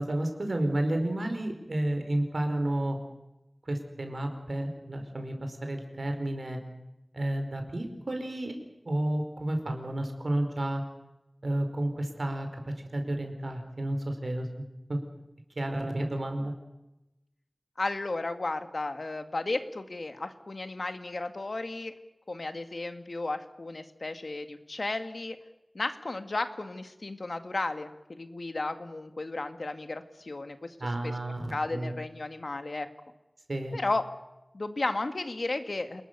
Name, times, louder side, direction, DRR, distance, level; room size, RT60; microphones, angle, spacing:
voice 1, 0.0-3.0 3.7-6.6 7.1-8.5 8.8-10.8 11.4-12.5 12.9-14.6 14.9-15.0 15.6-16.5 30.8-31.9 33.5-33.8, right 1 dB, 90° right, 5 dB, 4.9 m, -31 dB
voice 2, 17.8-21.9 22.3-25.4 25.7-31.1 31.5-32.9 33.7-34.1 34.5-36.0, left 2 dB, 85° left, 8 dB, 1.9 m, -34 dB
28.5 x 21.0 x 6.8 m, 0.95 s
wide cardioid pair, 50°, 0 cm